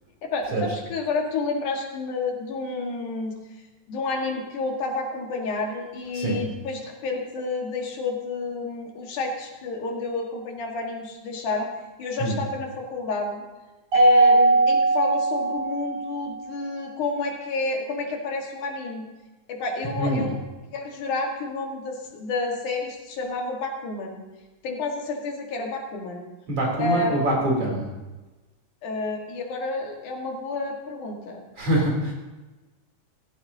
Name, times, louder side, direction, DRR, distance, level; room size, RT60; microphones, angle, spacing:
voice 1, 0.2-3.3 3.9-11.7 12.0-13.4 13.9-19.1 19.5-20.4 20.7-24.2 24.6-26.2 26.8-27.4 28.8-31.4, left 3 dB, 85° left, 1 dB, 3.3 m, -29 dB
Mallet percussion, 13.9-16.3, right 2 dB, 70° right, 5.1 m, -19 dB
voice 2, 19.8-20.4 26.5-27.9 31.6-32.1, right 1 dB, 50° right, -2 dB, 4.3 m, -24 dB
16.0 x 14.5 x 2.8 m, 1.2 s
omnidirectional pair, 3.5 m